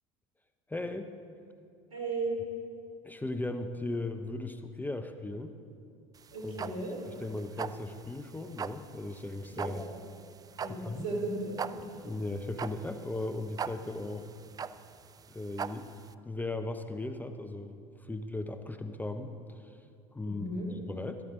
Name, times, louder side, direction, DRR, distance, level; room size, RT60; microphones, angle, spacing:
voice 1, 0.7-1.1 3.0-5.5 6.4-6.7 7.1-9.8 10.7-11.1 12.0-14.3 15.3-15.9 16.2-17.7 18.0-19.7 20.1-20.6 20.9-21.2, left 2 dB, 10° left, 8 dB, 0.7 m, -37 dB
voice 2, 1.9-2.3 6.3-6.9 9.5-9.8 10.6-11.8 20.2-20.7, right 2 dB, 80° right, -2 dB, 3.1 m, -35 dB
sound 1, 6.1-16.1, right 7 dB, 20° right, 0.4 m, -40 dB
13.5 x 13.0 x 3.7 m, 2.4 s
figure-of-eight pair, 70°, 18 cm